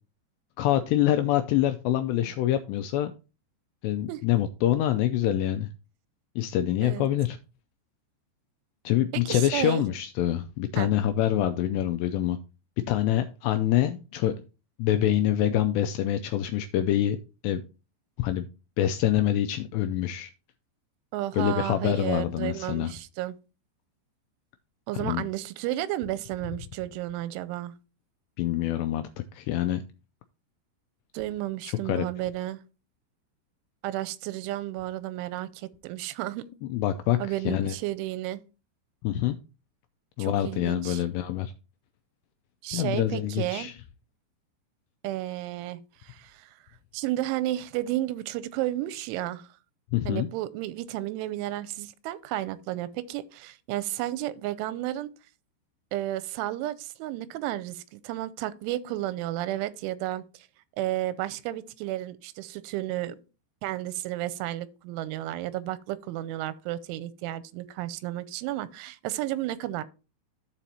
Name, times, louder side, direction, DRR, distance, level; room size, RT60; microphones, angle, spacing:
voice 1, 0.6-3.1 3.8-5.7 6.4-7.4 8.9-12.4 12.9-14.3 14.8-17.2 17.4-17.6 18.2-18.5 18.8-20.3 21.3-22.9 25.0-25.2 28.4-29.0 29.4-29.8 31.6-32.1 36.7-37.2 37.5-37.7 39.0-39.4 40.2-41.5 42.7-43.7 49.9-50.3, left 12 dB, 85° left, 2.5 m, -25 dB
voice 2, 9.1-9.9 10.8-10.9 21.1-23.4 24.9-27.7 31.1-32.6 33.8-36.5 37.2-38.4 40.2-41.0 42.6-43.7 45.0-46.6 46.9-49.5 50.1-55.1 55.9-60.5 60.8-63.2 63.6-69.8, right 14 dB, 90° right, 3.1 m, -32 dB
14.5 x 5.0 x 2.8 m
omnidirectional pair, 5.4 m